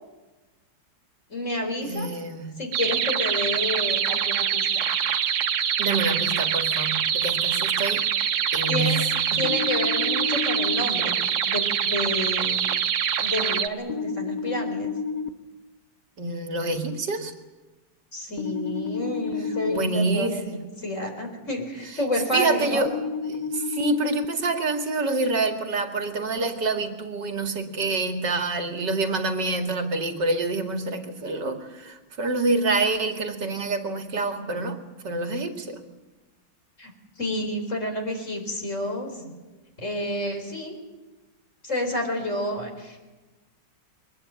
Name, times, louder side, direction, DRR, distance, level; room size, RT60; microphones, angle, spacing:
voice 1, 1.3-2.1 2.6-4.9 8.7-9.0 9.4-11.2 11.5-12.7 13.2-14.9 18.1-22.8 36.8-39.2 39.8-40.8 41.6-43.0, left 1 dB, 40° left, 3 dB, 4.5 m, -30 dB
voice 2, 1.8-2.6 5.8-8.0 8.5-9.0 9.3-9.4 16.2-17.3 19.7-20.6 22.3-22.9 23.3-34.8 35.0-35.8 39.2-39.3, right 3 dB, 70° right, 5 dB, 2.7 m, -27 dB
sound 1, 2.7-13.7, right 8 dB, 85° right, 1.8 m, -25 dB
sound 2, 9.4-10.8 13.9-15.3 18.4-19.8 22.9-24.2, left 5 dB, 65° left, 1.5 m, -30 dB
23.0 x 20.0 x 8.8 m, 1.2 s
omnidirectional pair, 2.0 m